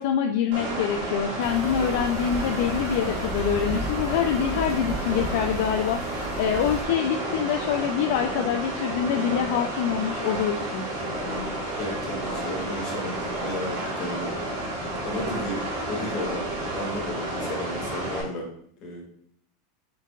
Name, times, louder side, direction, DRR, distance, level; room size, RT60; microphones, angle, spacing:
voice 1, 0.0-10.8, left 8 dB, 70° left, 4 dB, 0.3 m, -25 dB
sound 1, 0.5-18.2, right 1 dB, 80° right, 1.5 m, -31 dB
sound 2, 1.4-6.8, right 1 dB, 5° left, 0.6 m, -34 dB
voice 2, 11.8-14.3 15.0-15.6 15.9-18.5 18.8-19.0, left 1 dB, 45° left, 1 dB, 1.2 m, -33 dB
4.5 x 3.6 x 2.4 m, 0.67 s
supercardioid pair, 135°, 0 cm